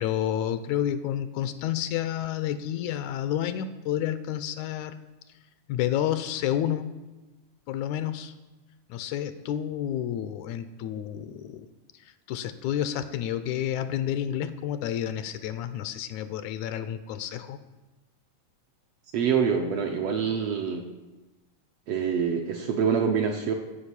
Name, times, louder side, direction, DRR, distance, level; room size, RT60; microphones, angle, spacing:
voice 1, 0.0-5.0 5.7-6.9 7.7-8.3 8.9-11.7 11.9-17.6, left 10 dB, 80° left, 12 dB, 1.9 m, -30 dB
voice 2, 19.1-20.8 21.9-23.5, right 6 dB, 70° right, 2 dB, 1.5 m, -25 dB
12.0 x 5.2 x 8.1 m, 1.1 s
omnidirectional pair, 3.5 m